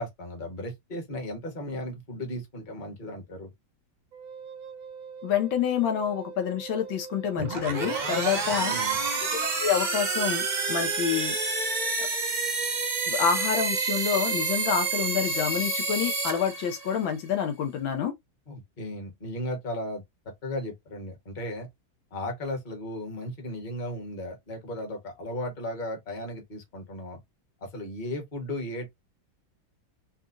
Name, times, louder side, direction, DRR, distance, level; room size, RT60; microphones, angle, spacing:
voice 1, 0.0-3.5 8.5-9.0 18.5-20.0 20.4-21.7 22.1-27.2 27.6-28.9, left 1 dB, 30° left, 1.1 m, -35 dB
Wind instrument woodwind instrument, 4.1-12.0, right 6 dB, 65° right, 0.9 m, -43 dB
voice 2, 5.2-8.7 9.4-11.4 12.0-12.1 13.1-18.1, left 8 dB, 85° left, 1.7 m, -28 dB
sound 1, 7.4-17.1, right 3 dB, 45° right, 0.6 m, -29 dB
4.3 x 2.3 x 2.4 m
omnidirectional pair, 2.1 m